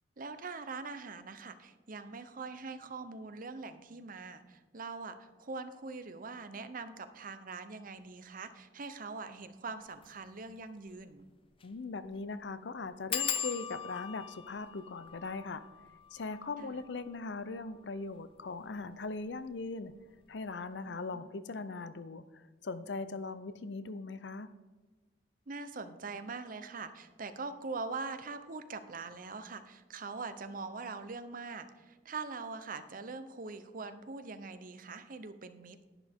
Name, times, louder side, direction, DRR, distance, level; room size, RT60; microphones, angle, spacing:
voice 1, 0.2-11.3 16.6-16.8 20.8-21.3 25.5-35.8, right 4 dB, 50° right, 10 dB, 0.8 m, -43 dB
sound 1, 9.9-10.1 10.6-10.7 10.9-11.0 11.5-11.8 12.0-12.1 13.1-18.4 19.1-19.6 19.9-20.2 20.5-20.6, left 8 dB, 30° left, 0.6 m, -40 dB
voice 2, 11.6-15.6 16.1-19.9 20.3-24.5, left 3 dB, 70° left, 13 dB, 0.6 m, -40 dB
11.0 x 10.5 x 3.6 m, 1.2 s
head